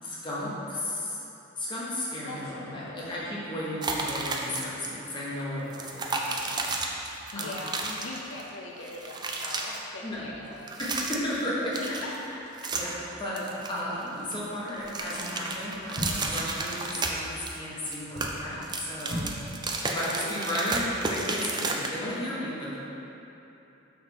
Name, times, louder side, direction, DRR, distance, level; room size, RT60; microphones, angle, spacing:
voice 1, 0.0-1.2 1.6-6.9 7.3-7.6 10.0-10.3 10.8-11.9 12.7-19.3 19.8-22.8, left 1 dB, 25° left, -8 dB, 1.4 m, -34 dB
voice 2, 2.3-2.9 7.1-10.8 11.8-12.7 19.8-20.6, left 2 dB, 80° left, -1 dB, 0.6 m, -41 dB
sound 1, 3.8-4.9 5.1-5.3 5.7-8.5 8.8-9.8 10.6-11.4 11.7-13.0 13.4-14.4 14.7-17.6 17.9-22.2, right 3 dB, 20° right, 0.4 m, -32 dB
sound 2, 14.8-15.1 15.9-16.4 17.9-18.4 19.0-19.4 19.7-19.8, equal, 55° right, 1.3 m, -35 dB
5.8 x 3.8 x 6.1 m, 2.9 s
head